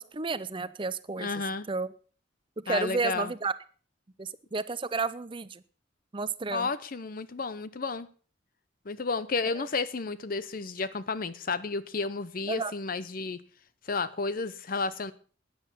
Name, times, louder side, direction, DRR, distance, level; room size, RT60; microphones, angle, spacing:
voice 1, 0.0-1.3 1.7-1.9 2.6-3.5 4.2-5.6 6.1-6.7 9.6-9.7 12.5-12.7, right 4 dB, 25° right, 15 dB, 0.6 m, -32 dB
voice 2, 1.2-1.7 2.7-3.3 6.5-8.1 8.9-13.4 13.9-15.1, left 4 dB, 50° left, 15 dB, 0.7 m, -32 dB
13.0 x 9.6 x 7.0 m, 0.41 s
head